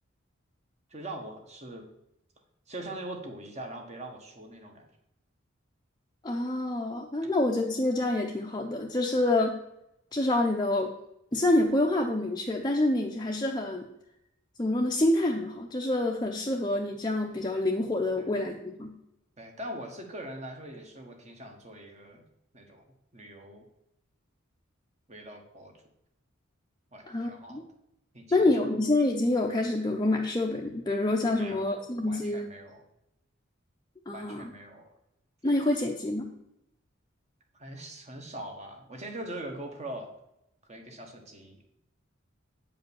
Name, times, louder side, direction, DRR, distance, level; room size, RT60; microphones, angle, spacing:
voice 1, 0.9-1.9 2.7-4.9 7.2-7.3 18.2-18.3 19.4-22.2 22.5-22.8 23.1-23.7 25.1-25.7 26.9-27.6 28.1-28.7 31.3-32.8 34.1-34.9 35.4-35.5 37.5-40.1 40.7-41.6, right 1 dB, 35° right, 3 dB, 1.5 m, -42 dB
voice 2, 6.2-9.6 10.1-10.9 11.3-13.9 14.6-18.9 27.1-27.6 28.3-32.5 34.1-34.5 35.4-36.3, left 2 dB, 20° left, 1 dB, 0.7 m, -27 dB
8.5 x 5.2 x 7.1 m, 0.82 s
head